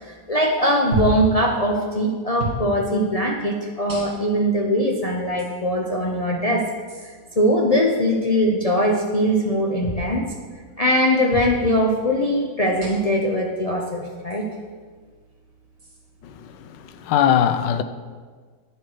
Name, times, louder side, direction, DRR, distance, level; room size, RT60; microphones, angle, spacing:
voice 1, 0.0-6.7 7.0-10.3 10.8-14.5, equal, 65° left, 0.3 m, -21 dB
sound 1, 0.9-1.3 2.4-2.6 3.9-4.4 5.4-5.5 6.9-7.1 9.8-10.1 11.3-11.6 12.8-13.2 14.3-14.4 15.8-16.0, right 1 dB, 45° right, 3.0 m, -29 dB
voice 2, 16.2-17.8, left 9 dB, 90° left, 1.3 m, -21 dB
10.5 x 7.4 x 5.0 m
omnidirectional pair, 1.9 m